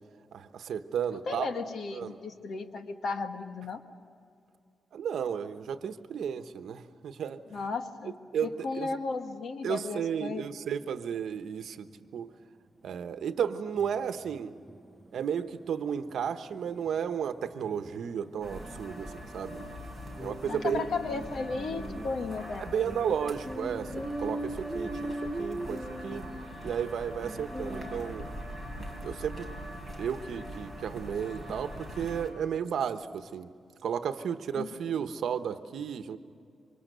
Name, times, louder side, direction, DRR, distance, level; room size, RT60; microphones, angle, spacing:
voice 1, 0.3-1.5 1.9-2.2 4.9-7.4 8.3-8.5 8.7-8.9 9.6-12.3 12.8-14.5 15.1-19.6 20.2-20.9 22.6-26.2 26.6-28.3 29.0-29.5 30.0-33.5 33.8-36.2, right 8 dB, 75° right, 9 dB, 1.1 m, -33 dB
voice 2, 1.1-3.8 7.5-8.1 8.4-10.5 20.5-22.6 34.6-34.7, left 4 dB, 60° left, 6 dB, 1.7 m, -35 dB
sound 1, 12.9-13.0 13.3-13.4 13.8-28.2, right 1 dB, 5° right, 0.9 m, -41 dB
sound 2, 18.4-32.3, equal, 20° left, 4.3 m, -42 dB
27.0 x 24.5 x 6.8 m, 2.4 s
wide cardioid pair, 150°, 0 cm